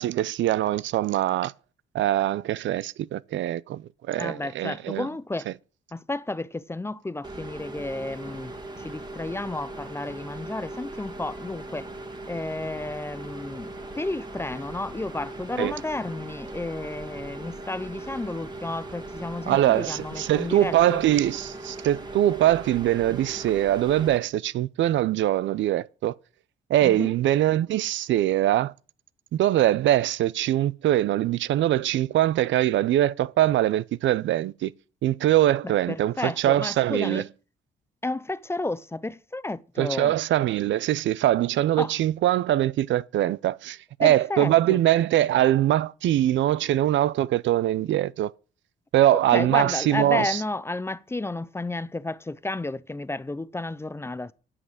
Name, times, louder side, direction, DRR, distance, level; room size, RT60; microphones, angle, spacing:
voice 1, 0.0-1.5 1.9-3.8 4.1-5.1 15.6-15.7 19.5-26.1 26.7-28.7 29.3-34.7 35.0-37.2 39.8-48.3 48.9-50.4, right 13 dB, 70° right, 0.5 m, -23 dB
voice 2, 4.2-5.5 5.9-11.9 12.3-21.0 26.8-27.1 35.6-37.2 38.0-40.1 41.8-41.9 44.0-44.8 49.1-54.3, left 2 dB, 15° left, 0.5 m, -32 dB
sound 1, 7.2-24.2, right 2 dB, 20° right, 2.0 m, -39 dB
9.6 x 5.8 x 6.4 m
cardioid pair, 90°, 20 cm